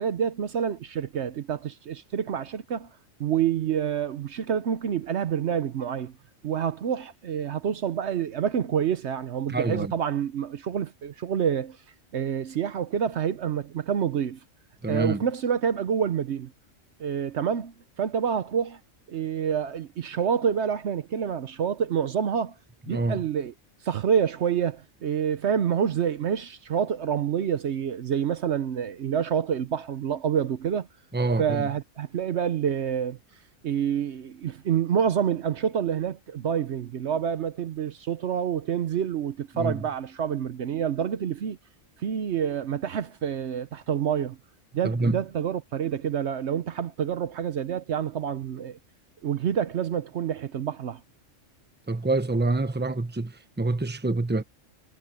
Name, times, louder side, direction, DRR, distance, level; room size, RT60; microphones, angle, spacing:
voice 1, 0.0-2.9 3.2-6.1 6.4-11.8 12.1-14.4 14.9-16.5 17.0-18.8 19.1-22.5 22.9-23.5 23.8-30.9 31.4-33.2 33.6-41.6 42.0-44.4 44.7-48.8 49.2-51.0, right 8 dB, 65° right, 1.0 m, -27 dB
voice 2, 9.5-9.9 14.8-15.2 22.9-23.2 31.1-31.7 39.5-39.8 44.8-45.2 51.9-54.4, right 2 dB, 10° right, 0.9 m, -26 dB
omnidirectional pair, 1.3 m